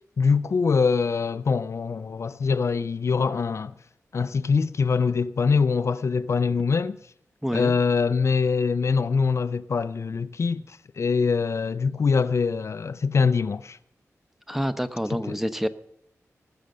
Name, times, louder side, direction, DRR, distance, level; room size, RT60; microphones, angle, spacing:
voice 1, 0.2-3.7 4.1-7.0 7.5-13.8 15.2-15.4, left 5 dB, 60° left, 0.4 m, -24 dB
voice 2, 7.4-7.7 14.5-15.7, equal, 5° right, 0.8 m, -27 dB
19.0 x 6.4 x 6.5 m
wide cardioid pair, 75°, 6 cm